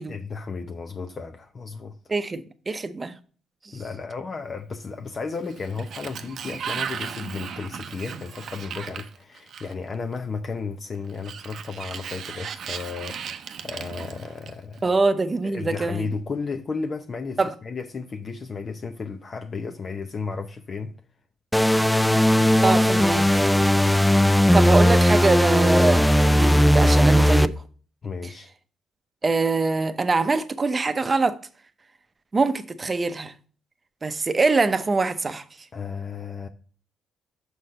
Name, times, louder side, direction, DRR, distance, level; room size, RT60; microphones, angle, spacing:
voice 1, 0.1-2.0 3.7-14.9 15.4-20.9 28.0-28.5 35.7-36.5, left 4 dB, 40° left, 0.7 m, -33 dB
voice 2, 2.1-3.1 14.8-16.1 17.4-17.5 22.6-23.3 24.5-27.5 29.2-31.4 32.3-33.3 34.0-35.4, right 3 dB, 30° right, 0.7 m, -23 dB
Sliding door, 5.3-9.9 11.1-14.8, right 7 dB, 65° right, 0.7 m, -36 dB
sound 1, 21.5-27.5, equal, 5° left, 0.4 m, -17 dB
6.3 x 4.1 x 5.3 m
cardioid pair, 90°, 0 cm